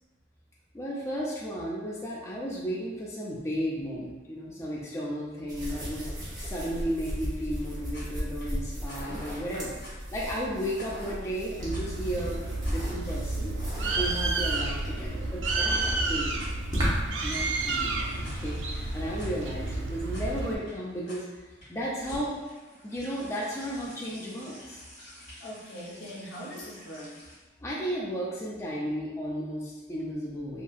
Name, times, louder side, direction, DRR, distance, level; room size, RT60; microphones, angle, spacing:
voice 1, 0.7-6.1 6.4-9.8 10.1-12.4 12.7-13.6 14.0-15.8 16.1-16.4 16.7-16.9 17.2-21.2 21.7-22.4 22.8-24.8 27.6-30.6, equal, 15° left, -5 dB, 0.3 m, -34 dB
sound 1, 5.5-17.2, equal, 20° right, 0.6 m, -36 dB
sound 2, 7.9-27.3, equal, 35° left, 1.2 m, -47 dB
Bird, 11.6-20.6, right 2 dB, 90° right, 0.4 m, -31 dB
voice 2, 25.4-27.3, equal, 75° left, -4 dB, 0.7 m, -42 dB
2.8 x 2.5 x 2.4 m, 1.2 s
head